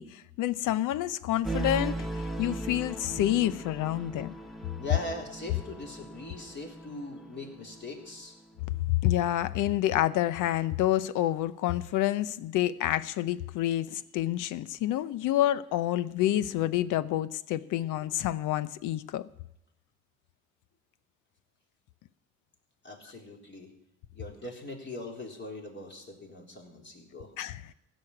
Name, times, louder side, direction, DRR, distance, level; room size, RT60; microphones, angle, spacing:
voice 1, 0.0-4.3 9.0-19.3 27.4-27.7, left 13 dB, 90° left, 17 dB, 0.6 m, -28 dB
sound 1, 1.4-8.2, right 2 dB, ahead, 1.2 m, -38 dB
voice 2, 4.8-8.4 22.8-23.7 24.1-27.3, left 2 dB, 35° left, 0 dB, 3.7 m, -41 dB
16.0 x 6.3 x 9.8 m, 0.86 s
cardioid pair, 90°, 30 cm